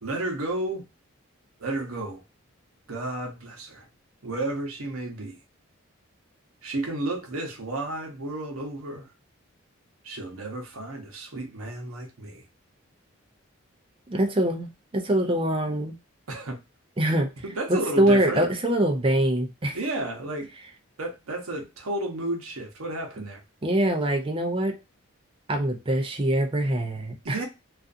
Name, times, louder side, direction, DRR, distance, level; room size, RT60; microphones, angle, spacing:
voice 1, 0.0-0.8 1.6-2.2 2.9-3.9 4.2-5.4 6.6-9.1 10.0-12.4 16.3-16.6 17.4-18.4 19.7-20.5 21.0-23.4 27.2-27.5, right 2 dB, 85° right, 0.8 m, -32 dB
voice 2, 14.1-16.0 17.0-17.3 17.7-19.8 23.6-24.8 25.5-27.4, right 1 dB, 25° right, 0.4 m, -24 dB
2.4 x 2.4 x 2.5 m
head